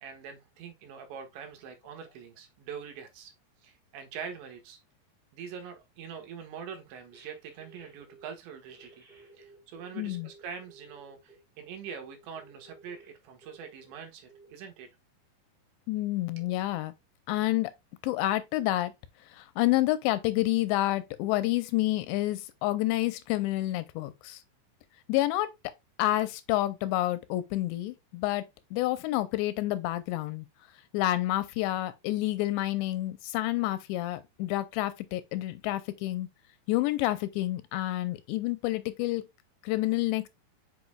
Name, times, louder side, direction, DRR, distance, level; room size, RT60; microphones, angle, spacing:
voice 1, 0.0-3.3 3.6-4.8 5.3-9.1 9.4-14.9 16.4-16.6, right 7 dB, 75° right, 3.6 m, -44 dB
sound 1, 7.1-8.3 8.7-11.4 12.0-14.0 14.3-14.5, right 3 dB, 15° right, 2.3 m, -56 dB
voice 2, 10.0-10.3 15.9-16.9 17.3-17.7 18.0-18.9 19.3-24.4 25.1-25.5 26.0-28.4 28.7-30.5 30.9-36.3 36.7-39.3 39.6-40.3, left 16 dB, 85° left, 2.7 m, -29 dB
7.9 x 5.4 x 2.3 m
omnidirectional pair, 5.2 m